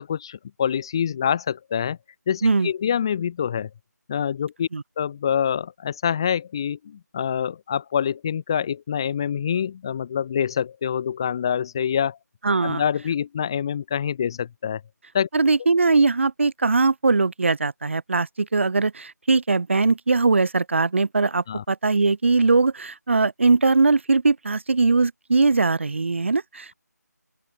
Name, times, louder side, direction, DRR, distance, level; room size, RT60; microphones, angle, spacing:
voice 1, 0.0-2.0 2.3-3.7 4.1-4.7 5.0-12.2 12.6-14.8 15.1-15.3 21.5-21.6, left 8 dB, 15° left, 1.2 m, -26 dB
voice 2, 12.4-12.8 15.3-26.7, right 3 dB, 40° right, 2.2 m, -20 dB
open air
figure-of-eight pair, 170°, 10 cm